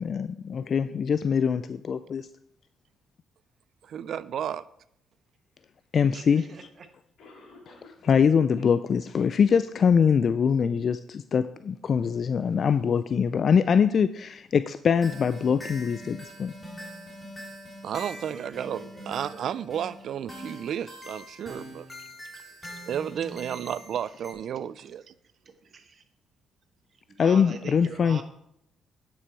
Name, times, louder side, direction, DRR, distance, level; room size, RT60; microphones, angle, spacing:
voice 1, 0.0-2.3 5.9-6.5 8.0-16.5 27.2-28.2, left 6 dB, 50° left, 12 dB, 0.3 m, -23 dB
voice 2, 3.8-4.6 17.8-21.9 22.7-25.1, right 9 dB, 65° right, 17 dB, 0.3 m, -32 dB
Cough, 6.1-6.2 7.2-8.3 8.6-8.7 9.2-9.3 9.9-10.0, left 3 dB, 70° left, 3.1 m, -51 dB
voice 3, 6.1-6.6 18.3-19.5 25.7-26.0 27.2-28.2, right 5 dB, 50° right, 8 dB, 1.1 m, -43 dB
sound 1, 15.0-24.3, equal, 10° left, 3.0 m, -43 dB
9.6 x 6.2 x 4.6 m, 0.76 s
cardioid pair, 90°, 0 cm